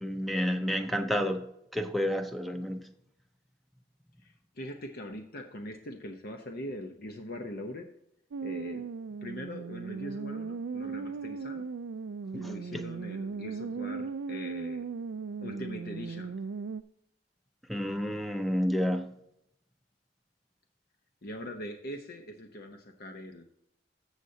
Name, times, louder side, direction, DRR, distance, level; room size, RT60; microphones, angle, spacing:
voice 1, 0.0-1.4 1.7-2.8 12.3-12.5 17.7-19.1, equal, ahead, 6 dB, 0.6 m, -30 dB
voice 2, 4.2-7.9 8.4-8.9 9.2-11.7 12.3-14.8 15.4-16.3 21.2-23.4, equal, 55° left, 4 dB, 0.8 m, -42 dB
sound 1, 8.3-16.8, right 4 dB, 80° right, 0.4 m, -37 dB
14.0 x 6.6 x 2.8 m, 0.75 s
head